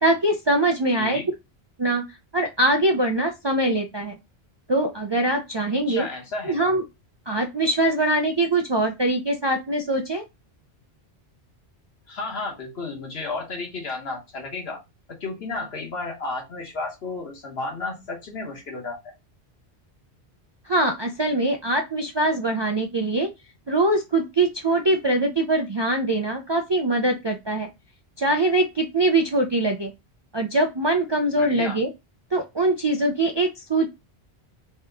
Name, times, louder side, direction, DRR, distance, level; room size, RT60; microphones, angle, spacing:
voice 1, 0.0-1.2 1.8-2.0 2.3-4.2 4.7-6.1 6.4-6.8 7.3-10.2 20.7-23.3 23.7-27.7 28.2-29.9 30.3-31.9 32.3-33.9, right 2 dB, 45° right, 2 dB, 0.3 m, -22 dB
voice 2, 1.0-1.3 5.9-6.6 12.1-14.8 15.2-19.1 31.4-31.8, left 3 dB, 70° left, 1 dB, 1.4 m, -32 dB
3.5 x 2.8 x 3.4 m, 0.23 s
omnidirectional pair, 1.1 m